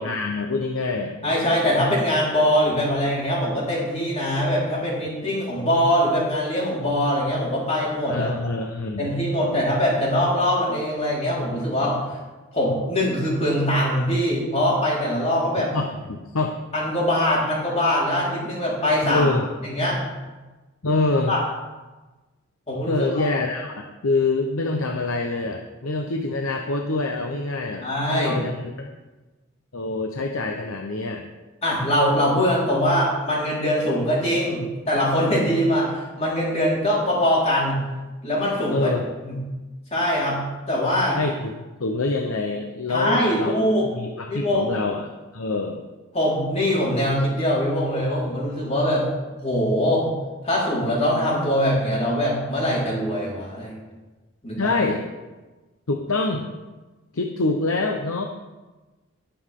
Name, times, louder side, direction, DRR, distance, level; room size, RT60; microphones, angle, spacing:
voice 1, 0.0-1.2 8.1-9.1 15.6-16.6 19.0-19.5 20.8-21.3 22.9-28.9 29.7-31.3 38.7-39.0 41.1-41.5 41.8-43.5 43.8-45.8 54.6-55.0 55.9-56.5 57.1-58.2, left 3 dB, 85° left, 3 dB, 0.9 m, -25 dB
voice 2, 1.2-8.3 9.0-12.0 12.5-15.7 16.7-19.3 19.6-20.0 21.3-21.4 22.7-23.2 27.8-28.4 31.6-37.8 38.2-38.9 39.2-39.4 39.9-41.2 42.9-43.9 44.3-44.8 46.1-49.1 49.4-50.1 50.4-53.7 54.4-54.8, equal, 30° left, -6 dB, 4.6 m, -22 dB
20.0 x 7.1 x 3.8 m, 1.2 s
head